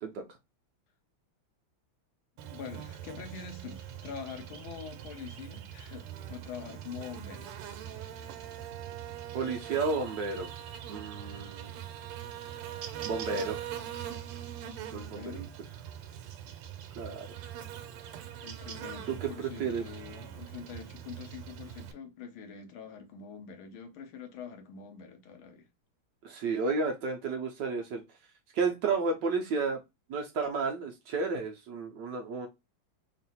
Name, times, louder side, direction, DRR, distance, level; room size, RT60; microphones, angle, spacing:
voice 1, 2.4-7.5 14.9-15.5 18.4-25.7, left 6 dB, 75° left, 1.5 m, -45 dB
Buzz, 2.4-21.9, right 10 dB, 85° right, 1.6 m, -42 dB
voice 2, 9.3-10.5 10.9-11.7 13.0-13.7 14.9-15.5 17.0-17.3 19.1-19.8 26.2-28.0 28.5-29.8 30.1-32.5, right 4 dB, 70° right, 1.2 m, -32 dB
3.7 x 2.5 x 4.1 m
omnidirectional pair, 2.3 m